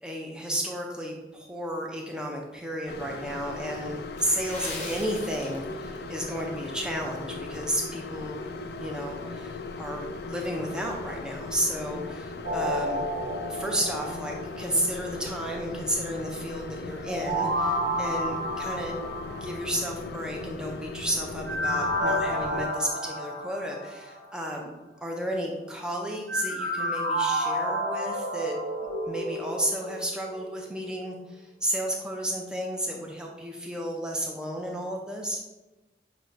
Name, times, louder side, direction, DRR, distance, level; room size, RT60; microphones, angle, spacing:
voice 1, 0.0-8.4 8.8-13.0 13.5-19.0 19.3-24.7 25.0-28.6 29.1-35.4, equal, 5° right, 0 dB, 0.5 m, -32 dB
sound 1, 2.9-22.7, left 3 dB, 65° left, 0.3 m, -38 dB
Water / Splash splatter, 4.2-6.0 6.3-6.6 7.1-7.3 7.8-7.9, left 3 dB, 40° left, 0.7 m, -40 dB
sound 2, 12.4-14.8 17.1-20.0 21.5-24.2 26.3-30.8 31.1-31.2, equal, 80° right, 0.7 m, -30 dB
5.9 x 2.2 x 3.9 m, 1.1 s
head